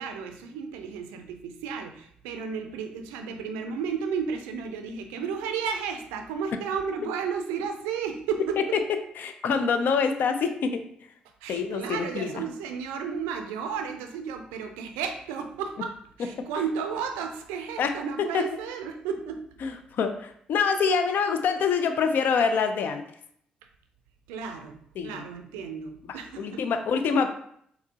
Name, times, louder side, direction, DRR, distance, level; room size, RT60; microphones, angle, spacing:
voice 1, 0.0-8.6 11.4-15.9 16.2-19.4 24.3-26.6, right 6 dB, 85° right, 5 dB, 0.4 m, -33 dB
voice 2, 9.2-10.8 11.5-12.4 16.4-16.5 17.8-18.5 19.6-23.0 25.0-25.2 26.1-27.3, left 5 dB, 65° left, 7 dB, 0.4 m, -26 dB
4.2 x 2.0 x 2.7 m, 0.66 s
hypercardioid pair, 45°, 4 cm